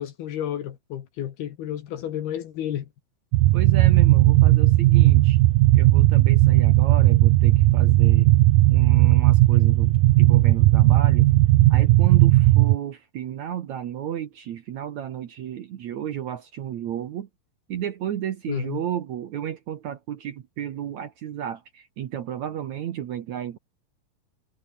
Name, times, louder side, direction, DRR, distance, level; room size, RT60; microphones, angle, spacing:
voice 1, 0.0-2.9 18.5-18.8, left 10 dB, 70° left, 3.6 m, -31 dB
sound 1, 3.3-12.8, right 17 dB, 80° right, 2.0 m, -16 dB
voice 2, 3.5-5.4 5.7-8.3 8.7-11.3 11.7-17.3 17.7-23.6, right 10 dB, 65° right, 1.8 m, -33 dB
omnidirectional pair, 4.9 m